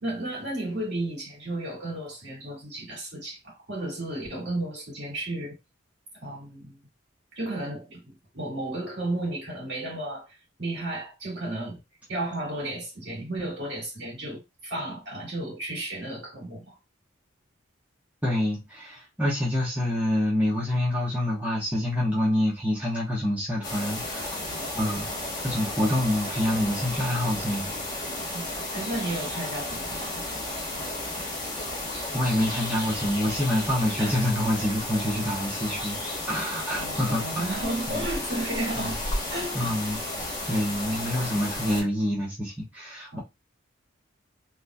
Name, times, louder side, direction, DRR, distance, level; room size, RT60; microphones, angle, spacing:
voice 1, 0.0-5.6 6.2-6.8 7.3-10.3 10.6-11.8 12.1-16.8 24.5-24.7 28.3-28.5 28.7-30.2 34.0-34.2 36.8-39.0 39.3-39.7 43.1-43.2, right 1 dB, 55° right, 1.8 m, -33 dB
voice 2, 18.2-24.4 24.7-25.1 25.4-27.7 32.1-36.0 36.3-37.5 38.0-38.1 38.8-38.9 39.5-40.0 40.5-43.2, left 1 dB, 10° right, 1.1 m, -27 dB
sound 1, 23.6-41.8, left 1 dB, 20° left, 0.9 m, -33 dB
3.9 x 3.1 x 2.2 m
head